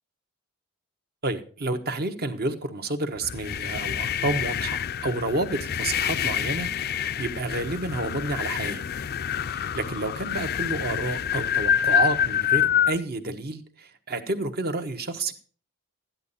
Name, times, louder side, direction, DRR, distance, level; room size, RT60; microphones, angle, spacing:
voice 1, 1.2-8.8 9.5-15.3, right 2 dB, 45° right, 8 dB, 1.3 m, -30 dB
sound 1, 3.2-13.0, left 9 dB, 45° left, 0.4 m, -27 dB
13.5 x 10.5 x 4.1 m, 0.41 s
head